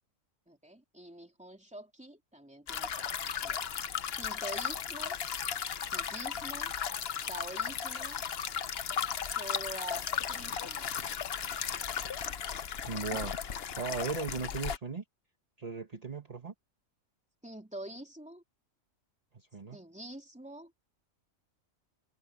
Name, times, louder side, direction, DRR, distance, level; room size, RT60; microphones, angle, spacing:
voice 1, 0.5-3.1 3.4-3.6 4.1-5.2 5.8-6.7 7.3-8.2 9.1-10.9 13.1-13.2 17.4-18.4 19.7-20.7, right 1 dB, 5° right, 3.1 m, -46 dB
sound 1, 2.7-14.8, left 7 dB, 50° left, 1.0 m, -35 dB
voice 2, 12.8-13.3 13.8-15.0 15.6-16.5 19.3-19.8, right 5 dB, 30° right, 1.5 m, -37 dB
omnidirectional pair, 1.4 m